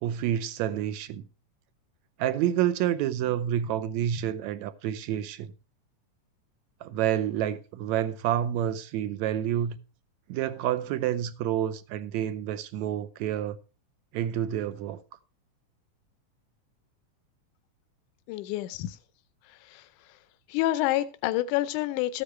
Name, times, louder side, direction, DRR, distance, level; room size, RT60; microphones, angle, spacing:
voice 1, 0.0-1.2 2.2-5.5 6.8-9.8 10.3-13.6 14.1-15.0, right 11 dB, 75° right, 1.9 m, -28 dB
voice 2, 18.3-19.0 19.4-20.2 20.5-22.2, left 15 dB, 85° left, 2.1 m, -29 dB
13.5 x 9.8 x 3.2 m
omnidirectional pair, 3.5 m